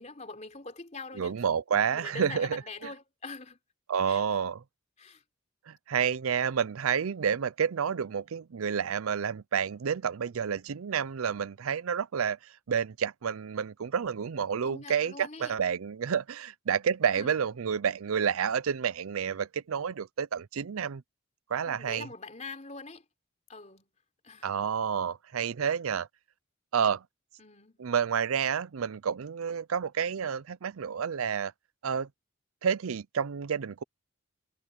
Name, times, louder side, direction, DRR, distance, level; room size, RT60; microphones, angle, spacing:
voice 1, 0.0-1.4 1.9-3.6 4.1-4.4 5.0-5.2 14.6-15.6 17.1-17.4 21.7-23.1 23.5-23.9 24.2-24.5 27.4-27.8, left 3 dB, 35° left, 3.7 m, -44 dB
voice 2, 1.2-2.6 3.9-4.6 5.7-12.4 12.7-21.0 21.5-22.1 24.4-26.1 26.7-27.0 27.8-31.5 31.8-32.1 32.6-33.8, right 7 dB, 85° right, 0.5 m, -29 dB
head